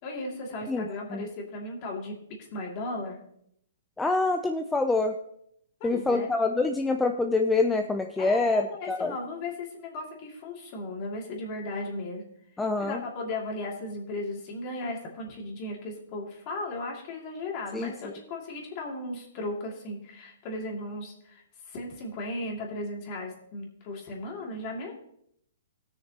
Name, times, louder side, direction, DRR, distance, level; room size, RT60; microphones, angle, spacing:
voice 1, 0.0-3.2 5.8-6.3 8.2-12.2 12.8-24.9, left 2 dB, 35° left, -1 dB, 2.6 m, -36 dB
voice 2, 0.7-1.3 4.0-5.2 5.8-9.1 12.6-13.0 17.7-17.9, left 3 dB, 5° left, 4 dB, 0.5 m, -26 dB
19.5 x 6.5 x 2.9 m, 0.72 s
hypercardioid pair, 150°, 0 cm